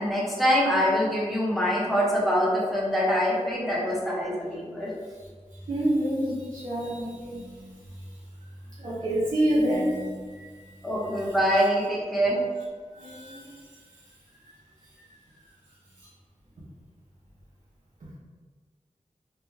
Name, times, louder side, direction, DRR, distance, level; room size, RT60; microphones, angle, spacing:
voice 1, 0.0-4.9 10.8-12.4, equal, ahead, -6 dB, 0.9 m, -24 dB
voice 2, 5.7-7.7 8.8-10.9 12.9-13.5, right 1 dB, 85° right, -10 dB, 0.6 m, -28 dB
2.2 x 2.2 x 3.1 m, 1.5 s
cardioid pair, 45°, 13 cm